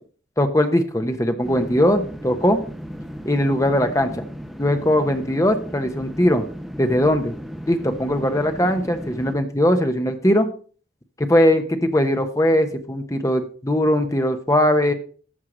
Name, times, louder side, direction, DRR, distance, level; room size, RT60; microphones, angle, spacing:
voice 1, 0.4-2.6 3.2-4.2 4.6-6.5 6.8-7.4 7.7-10.5 11.2-14.9, left 1 dB, 15° left, 7 dB, 0.9 m, -20 dB
sound 1, 1.4-9.4, equal, ahead, 0.6 m, -35 dB
13.5 x 4.7 x 5.0 m, 0.41 s
head